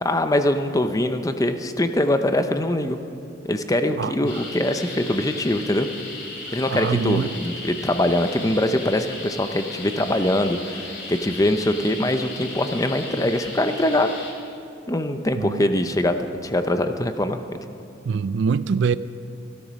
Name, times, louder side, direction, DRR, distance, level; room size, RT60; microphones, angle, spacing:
voice 1, 0.0-3.0 3.4-5.9 6.5-14.1 14.9-16.1 16.4-17.6, left 1 dB, 20° left, 0.7 m, -23 dB
voice 2, 4.0-4.4 6.7-7.3 15.4-15.7 18.1-19.0, right 5 dB, 65° right, 0.4 m, -24 dB
sound 1, 4.3-14.3, left 2 dB, 65° left, 3.0 m, -36 dB
15.5 x 12.5 x 6.3 m
head